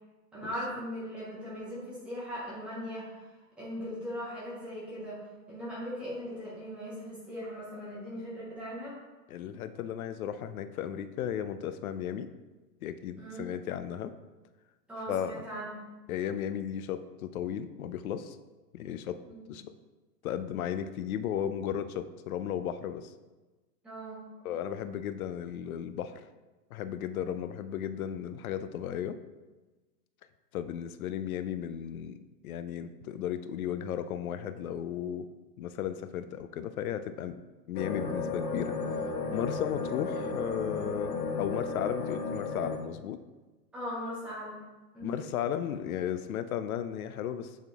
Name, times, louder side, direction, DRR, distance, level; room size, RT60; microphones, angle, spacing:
voice 1, 0.3-3.2 3.6-5.2 5.5-9.0 13.2-13.5 14.9-15.9 19.3-19.4 23.8-24.2 43.7-44.6 44.9-45.2, equal, 5° right, -8 dB, 0.6 m, -39 dB
voice 2, 9.3-12.3 12.8-14.1 15.1-15.4 16.1-18.4 18.7-19.7 20.2-23.1 24.4-26.2 26.7-29.2 30.5-32.2 32.4-35.3 35.6-37.4 37.7-43.2 45.0-47.5, left 9 dB, 60° left, 11 dB, 0.6 m, -35 dB
sound 1, 37.7-42.8, left 4 dB, 85° left, 1.6 m, -34 dB
8.3 x 3.7 x 3.5 m, 1.2 s
supercardioid pair, 165°, 49 cm